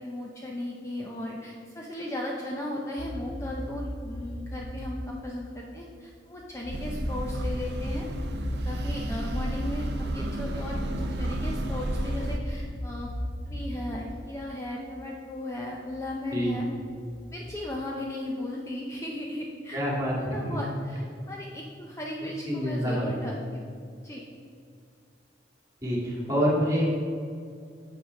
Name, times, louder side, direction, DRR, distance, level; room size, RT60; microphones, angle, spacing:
voice 1, 0.0-8.1 8.6-13.1 13.5-16.7 17.3-19.8 20.2-23.6 24.0-24.2, left 1 dB, 15° left, -2 dB, 0.6 m, -36 dB
sound 1, 3.0-5.7 6.0-6.1 6.4-14.3 14.6-14.9 15.2-15.3 15.6-15.7 15.9-16.0 16.3-16.4 16.8-17.6, equal, 55° left, 0.8 m, -36 dB
sound 2, 6.7-12.4, right 1 dB, 60° right, 0.6 m, -33 dB
voice 2, 19.7-20.6 22.4-23.1 25.8-26.9, equal, 20° right, -4 dB, 2.0 m, -27 dB
7.3 x 6.0 x 5.2 m, 2.3 s
head